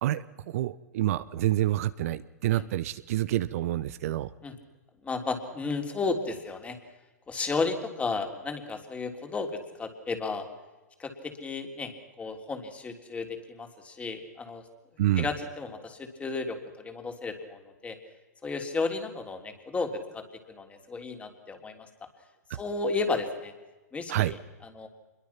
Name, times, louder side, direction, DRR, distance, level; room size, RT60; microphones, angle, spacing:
voice 1, 0.5-4.3 15.0-15.3 24.1-24.3, right 14 dB, 60° right, 14 dB, 0.9 m, -27 dB
voice 2, 5.0-6.8 7.3-9.5 9.8-10.4 11.0-14.6 15.2-18.0 18.4-21.9 22.5-23.5 23.9-24.4 24.6-24.9, left 4 dB, 15° left, 5 dB, 3.4 m, -33 dB
26.0 x 22.5 x 5.9 m, 1.1 s
hypercardioid pair, 120°, 9 cm